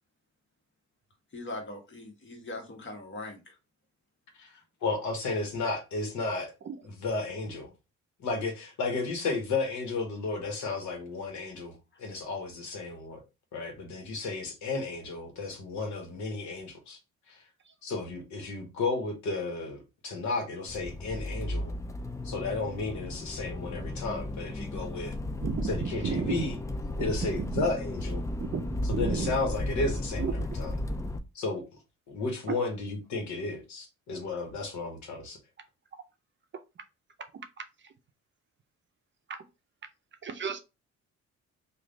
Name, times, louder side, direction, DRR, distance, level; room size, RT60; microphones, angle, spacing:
voice 1, 1.3-3.6, left 2 dB, 40° left, 1.3 m, -41 dB
voice 2, 4.8-6.5 7.0-7.7 8.2-13.2 13.5-17.0 17.3-17.4 17.8-21.7 22.2-25.1 25.6-26.6 27.0-28.3 28.9-30.3 30.6-30.7 31.3-31.6 32.1-35.4, left 3 dB, 70° left, 1.2 m, -33 dB
Accelerating revving vroom, 20.7-31.2, left 1 dB, 10° left, 0.3 m, -34 dB
voice 3, 25.4-26.5 27.1-27.7 28.4-29.4 30.2-30.3 32.5-32.6 37.6-37.9 39.3-39.4 40.2-40.6, right 6 dB, 40° right, 0.6 m, -33 dB
3.2 x 2.4 x 3.8 m
cardioid pair, 90°, 30 cm